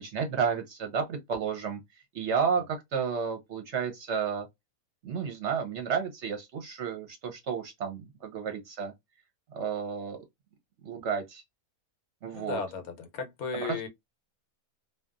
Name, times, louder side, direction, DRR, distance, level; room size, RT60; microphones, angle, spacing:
voice 1, 0.0-1.8 2.1-4.5 5.0-8.9 9.5-10.2 10.8-11.4 12.2-12.6 13.5-13.9, right 6 dB, 60° right, 0.8 m, -31 dB
voice 2, 12.3-13.9, left 5 dB, 75° left, 1.1 m, -35 dB
2.8 x 2.2 x 2.3 m
omnidirectional pair, 1.6 m